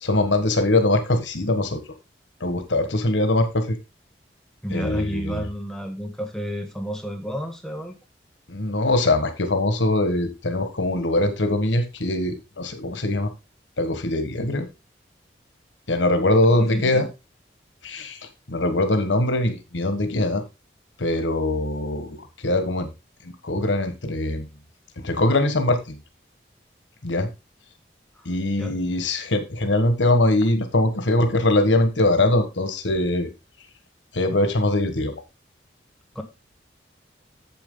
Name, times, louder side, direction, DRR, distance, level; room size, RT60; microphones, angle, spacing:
voice 1, 0.0-1.8 2.4-3.8 4.7-5.4 8.5-13.3 13.8-14.7 15.9-17.1 17.8-18.2 18.5-20.4 21.0-22.2 22.4-22.9 23.4-24.5 25.0-26.0 27.0-27.3 28.2-33.3 34.1-35.1, left 2 dB, 90° left, 8 dB, 1.5 m, -22 dB
voice 2, 4.6-8.0 16.5-17.1 28.1-28.3 28.6-28.8 36.1-36.2, equal, 5° left, 4 dB, 1.1 m, -31 dB
8.8 x 7.2 x 3.9 m, 0.26 s
head